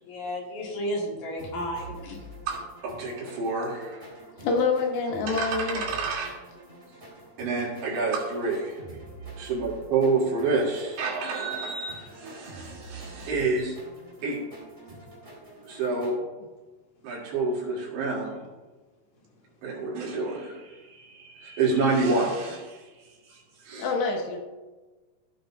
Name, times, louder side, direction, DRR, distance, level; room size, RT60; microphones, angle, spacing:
voice 1, 0.0-2.2, equal, 60° left, -2 dB, 3.0 m, -33 dB
sound 1, 1.4-16.1, right 1 dB, 15° right, 3.4 m, -46 dB
voice 2, 2.8-4.1 5.3-6.4 7.4-8.8 9.4-13.7 14.2-14.4 15.7-16.2 17.0-18.4 19.6-23.9, right 3 dB, 80° right, -5 dB, 4.8 m, -28 dB
voice 3, 4.4-5.8 23.8-24.4, left 4 dB, 80° left, 1 dB, 3.6 m, -26 dB
15.5 x 9.0 x 2.5 m, 1.2 s
omnidirectional pair, 4.9 m